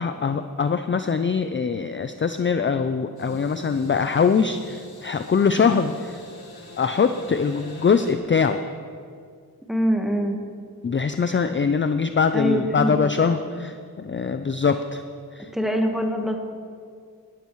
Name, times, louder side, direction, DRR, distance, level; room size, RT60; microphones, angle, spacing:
voice 1, 0.0-6.2 6.8-8.6 10.8-15.0 15.3-15.5, left 5 dB, 35° left, 9 dB, 0.4 m, -23 dB
sound 1, 3.2-8.2, left 2 dB, 80° left, 1.7 m, -44 dB
voice 2, 9.7-10.4 11.3-11.4 12.3-12.9 15.5-16.4, equal, ahead, 3 dB, 1.2 m, -23 dB
17.5 x 12.5 x 3.1 m, 2.2 s
wide cardioid pair, 95°, 36 cm